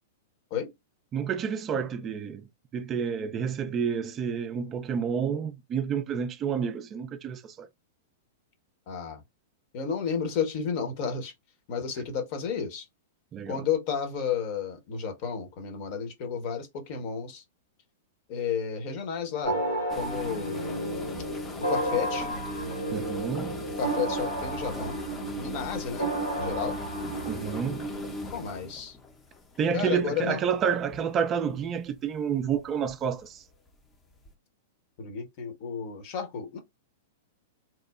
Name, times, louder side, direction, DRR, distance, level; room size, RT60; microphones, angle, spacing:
voice 1, 1.1-2.5 2.7-7.7 13.3-13.6 22.9-23.6 27.3-27.9 29.6-33.4, right 7 dB, 30° right, 0.3 m, -29 dB
voice 2, 8.9-9.2 9.7-11.3 11.7-12.8 13.5-17.4 18.3-19.6 19.9-20.6 21.6-22.3 23.8-25.0 25.3-26.8 28.3-29.0 29.7-30.4 35.0-36.6, left 7 dB, 45° left, 0.8 m, -32 dB
sound 1, 19.4-28.2, right 2 dB, 85° left, 1.2 m, -32 dB
sound 2, 19.9-30.1 30.7-31.0 31.5-31.7 32.5-32.9 33.2-33.3 34.3-34.4, left 2 dB, 15° left, 0.6 m, -39 dB
2.9 x 2.0 x 2.3 m
figure-of-eight pair, 100°, 0 cm